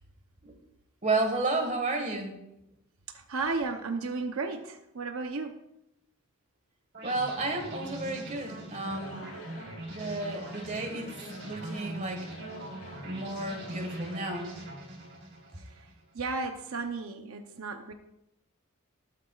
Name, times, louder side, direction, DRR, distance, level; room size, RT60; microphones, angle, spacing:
voice 1, 1.0-2.4 7.0-9.3 9.9-11.2 11.4-12.3 13.0-14.5, right 2 dB, 35° right, 4 dB, 1.7 m, -32 dB
voice 2, 3.1-5.6 15.6-17.9, right 4 dB, 75° right, 5 dB, 0.8 m, -34 dB
sound 1, 6.9-16.0, right 1 dB, 55° right, 4.2 m, -42 dB
Singing / Crowd, 8.7-14.3, left 1 dB, 75° left, 3.9 m, -50 dB
20.0 x 8.5 x 2.4 m, 0.86 s
head